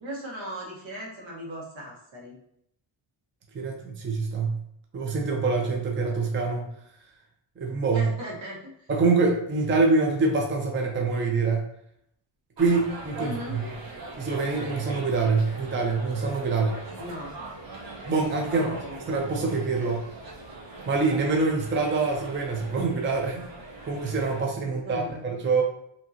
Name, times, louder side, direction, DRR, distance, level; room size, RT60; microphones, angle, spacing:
voice 1, 0.0-2.4 7.9-8.9 13.2-13.6 17.0-17.3 18.5-19.1 24.6-25.2, equal, 75° right, -3 dB, 1.4 m, -38 dB
voice 2, 3.5-4.6 4.9-6.7 7.6-8.1 8.9-11.6 12.6-13.6 14.2-16.8 18.0-18.7 19.1-20.0 20.9-23.5 23.8-25.6, right 4 dB, 25° right, 1 dB, 0.5 m, -25 dB
sound 1, 12.6-24.4, right 2 dB, 50° right, 0.9 m, -41 dB
5.1 x 2.9 x 2.8 m, 0.73 s
wide cardioid pair, 170°, 47 cm